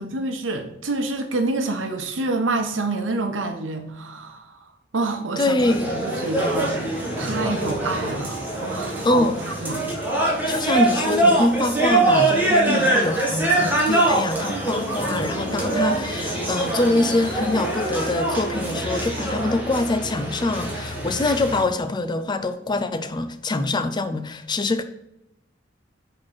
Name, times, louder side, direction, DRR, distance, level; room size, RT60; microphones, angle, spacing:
voice 1, 0.0-4.6 4.9-5.6 5.9-6.8 7.2-9.3 9.6-9.9 12.7-13.0, right 2 dB, 85° right, 0.9 m, -27 dB
voice 2, 5.4-6.0 9.0-9.4 10.5-24.8, left 2 dB, 25° left, 0.4 m, -24 dB
sound 1, 5.6-21.6, right 2 dB, 10° right, 1.4 m, -24 dB
5.9 x 4.5 x 4.7 m
head